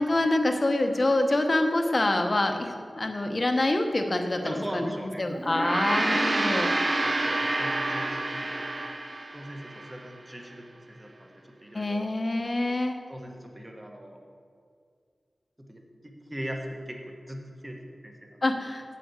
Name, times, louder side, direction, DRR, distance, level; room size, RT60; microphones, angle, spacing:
voice 1, 0.0-4.9 5.2-6.7 11.7-13.0 18.4-18.8, left 2 dB, 40° left, 5 dB, 1.0 m, -26 dB
voice 2, 4.4-5.3 7.0-8.6 9.3-11.3 11.6-12.1 13.1-14.2 15.7-17.8 18.0-18.3, equal, 15° right, 2 dB, 1.4 m, -40 dB
Gong, 5.4-10.0, right 2 dB, 35° right, 0.7 m, -28 dB
7.6 x 7.4 x 7.1 m, 2.3 s
wide cardioid pair, 90°, 0 cm